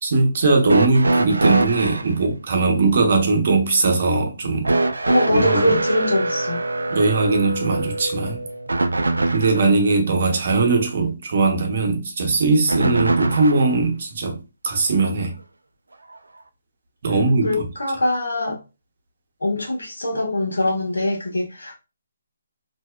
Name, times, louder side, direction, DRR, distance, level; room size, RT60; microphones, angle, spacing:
voice 1, 0.0-4.7 5.3-5.6 6.9-8.5 9.3-14.4 14.6-15.3 17.0-17.5, right 3 dB, 55° right, 0.7 m, -20 dB
sound 1, 0.7-2.1 4.6-9.7 12.7-13.8 15.0-15.1 16.1-16.2, right 2 dB, 80° right, 0.3 m, -23 dB
voice 2, 5.0-6.6 17.4-18.6 19.4-21.7, left 1 dB, 80° left, 0.9 m, -23 dB
2.6 x 2.1 x 2.2 m
figure-of-eight pair, 145°, 0 cm